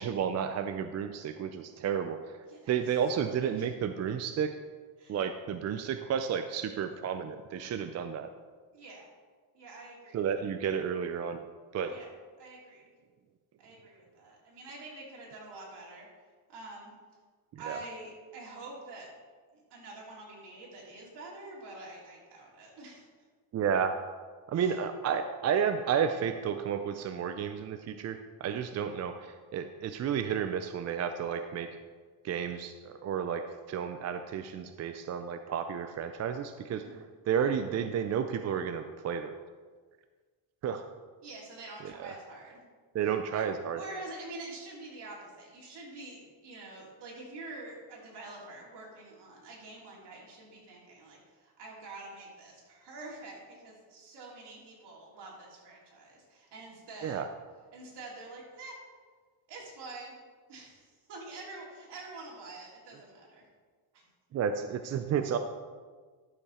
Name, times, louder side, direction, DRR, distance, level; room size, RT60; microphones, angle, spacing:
voice 1, 0.0-2.4 2.7-4.5 5.1-8.3 10.1-11.4 11.7-11.9 17.7-17.8 23.5-23.9 24.5-31.7 32.2-33.4 33.7-36.8 37.3-39.3 40.6-40.8 42.0-42.1 42.9-43.8 57.0-57.3 64.3-65.4, right 7 dB, 35° right, 8 dB, 0.4 m, -31 dB
voice 2, 2.5-3.7 5.0-5.2 8.7-9.1 9.5-10.3 11.9-12.1 12.4-12.9 13.6-16.1 16.5-16.9 17.6-19.1 19.5-23.1 24.5-24.8 36.8-37.1 41.2-42.6 43.0-43.5 43.7-57.3 57.7-58.8 59.5-60.1 60.5-63.5 63.9-64.0, right 2 dB, 60° right, -3 dB, 3.3 m, -46 dB
12.0 x 6.8 x 4.2 m, 1.5 s
cardioid pair, 130°, 46 cm